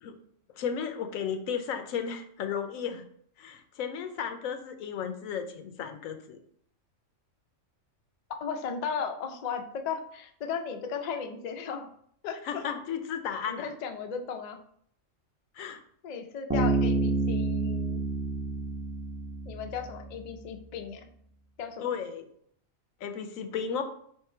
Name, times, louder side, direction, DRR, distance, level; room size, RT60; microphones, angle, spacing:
voice 1, 0.6-3.0 3.4-6.4 12.4-13.7 15.5-15.8 21.8-22.2 23.0-23.8, left 7 dB, 90° left, 8 dB, 1.0 m, -34 dB
voice 2, 8.4-11.9 12.2-12.6 13.5-14.6 16.0-18.0 19.5-21.1 21.6-21.9, left 6 dB, 70° left, 6 dB, 0.4 m, -36 dB
Bass guitar, 16.5-20.0, right 3 dB, 10° right, 0.5 m, -28 dB
3.6 x 3.2 x 4.3 m, 0.65 s
omnidirectional pair, 1.4 m